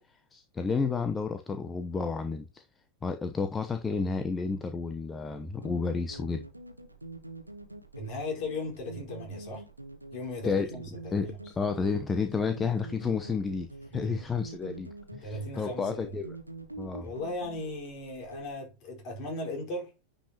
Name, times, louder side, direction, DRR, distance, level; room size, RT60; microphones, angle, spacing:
voice 1, 0.3-2.7 3.0-6.5 10.4-10.7 11.1-16.3 16.8-17.1, left 5 dB, 15° left, 0.9 m, -31 dB
sound 1, 5.6-18.5, right 2 dB, 85° right, 1.2 m, -45 dB
voice 2, 8.0-9.7 10.1-11.3 13.9-14.2 15.2-16.2 17.0-19.9, left 2 dB, 40° left, 4.7 m, -37 dB
10.0 x 5.5 x 2.9 m
figure-of-eight pair, 90°, 0 cm